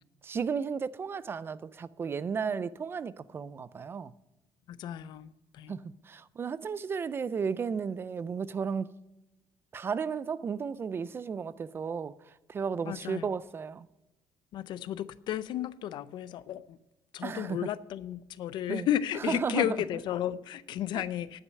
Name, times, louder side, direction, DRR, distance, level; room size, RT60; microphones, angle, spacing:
voice 1, 0.2-4.1 5.7-8.9 9.7-12.1 12.5-13.9 17.2-17.6 18.7-18.9 19.3-19.7 20.9-21.0, right 6 dB, 25° right, 0.3 m, -34 dB
voice 2, 4.7-5.8 12.9-13.3 14.5-16.8 17.1-21.4, left 11 dB, 60° left, 0.5 m, -33 dB
11.0 x 6.2 x 7.6 m
cardioid pair, 145°, 9 cm